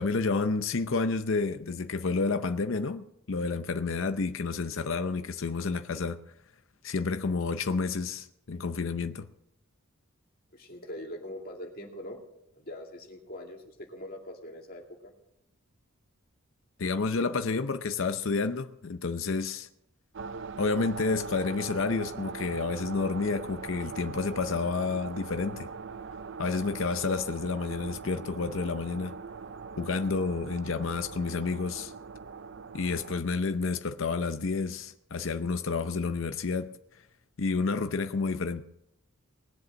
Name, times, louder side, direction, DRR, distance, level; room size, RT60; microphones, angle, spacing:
voice 1, 0.0-6.2 6.8-9.3 16.8-19.7 20.6-25.7 26.4-29.2 29.8-31.9 32.7-36.7 37.4-38.6, left 4 dB, 65° left, 0.6 m, -30 dB
voice 2, 10.5-12.2 12.5-15.1, left 1 dB, 45° left, 2.5 m, -42 dB
sound 1, 20.1-33.2, right 5 dB, 60° right, 0.5 m, -41 dB
20.0 x 7.9 x 6.3 m
head